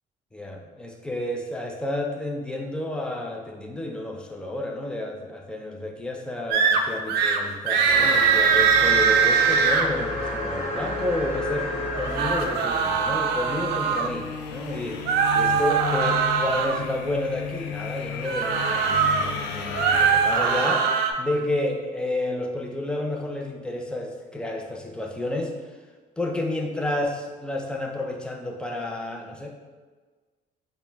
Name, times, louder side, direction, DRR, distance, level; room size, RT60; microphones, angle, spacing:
voice 1, 0.3-25.5 26.2-29.5, left 1 dB, 5° left, 1 dB, 0.4 m, -30 dB
sound 1, 6.5-6.8 7.1-7.4 7.7-9.9 11.9-14.1 15.0-16.8 18.2-19.2 19.7-21.1, right 6 dB, 75° right, 0.4 m, -21 dB
sound 2, 7.9-12.8, left 1 dB, 35° left, 1.1 m, -30 dB
sound 3, 12.7-20.7, left 8 dB, 80° left, 0.4 m, -35 dB
4.2 x 2.2 x 3.4 m, 1.4 s
cardioid pair, 110°, 17 cm